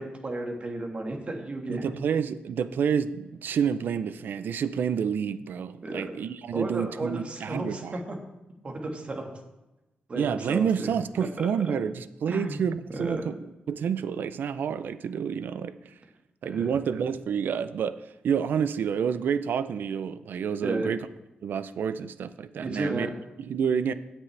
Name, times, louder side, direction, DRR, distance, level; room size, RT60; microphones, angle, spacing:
voice 1, 0.0-1.9 5.8-6.0 6.5-7.8 8.1-8.2 8.6-9.3 10.1-10.9 11.4-11.5 12.3-12.6 12.9-13.2 16.4-16.7 20.6-20.9 22.6-23.1, right 2 dB, 35° right, 2 dB, 1.7 m, -33 dB
voice 2, 1.7-7.9 10.1-13.3 13.7-15.9 16.4-21.1 21.4-23.1 23.4-23.9, right 7 dB, 75° right, 13 dB, 0.5 m, -29 dB
17.0 x 6.0 x 3.3 m, 0.99 s
wide cardioid pair, 120°, 3 cm